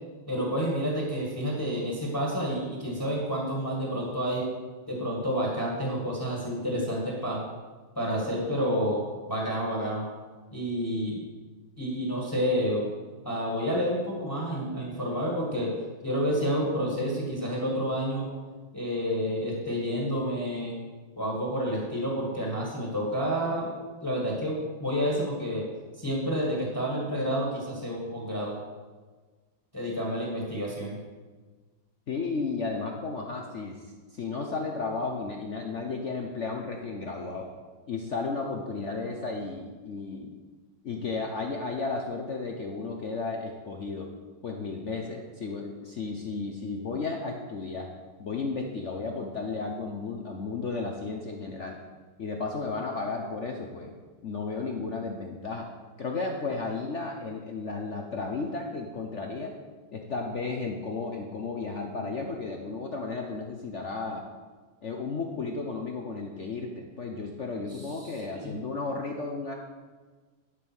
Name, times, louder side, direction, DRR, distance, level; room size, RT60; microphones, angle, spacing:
voice 1, 0.3-4.4 4.9-7.4 8.0-10.0 10.5-11.2 11.8-12.9 13.2-15.7 16.0-18.3 18.7-20.7 21.2-23.7 24.0-25.7 26.0-28.6 29.7-31.0 67.7-68.6, equal, 10° left, -3 dB, 1.8 m, -29 dB
voice 2, 32.1-37.5 37.9-40.4 40.8-44.1 44.4-47.9 48.2-51.8 52.2-53.9 54.2-55.7 56.0-59.5 59.9-64.2 64.8-69.5, left 4 dB, 55° left, 2 dB, 0.8 m, -33 dB
11.5 x 5.4 x 6.3 m, 1.4 s
omnidirectional pair, 2.2 m